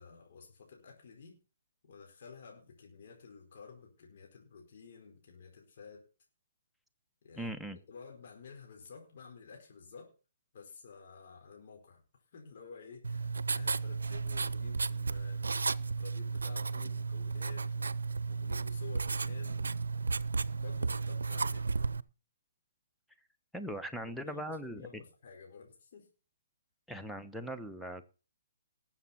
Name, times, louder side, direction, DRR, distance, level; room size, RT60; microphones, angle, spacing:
voice 1, 0.0-1.4 1.8-6.0 7.2-7.6 7.9-10.1 10.5-18.0 18.3-19.7 20.6-21.7 24.0-26.1, left 5 dB, 55° left, 1 dB, 4.6 m, -52 dB
voice 2, 7.4-7.8 23.5-25.0 26.9-28.1, equal, ahead, 5 dB, 1.1 m, -40 dB
Writing, 13.0-22.0, right 4 dB, 80° right, 0.6 m, -34 dB
20.0 x 7.5 x 4.3 m, 0.35 s
figure-of-eight pair, 135°, 0 cm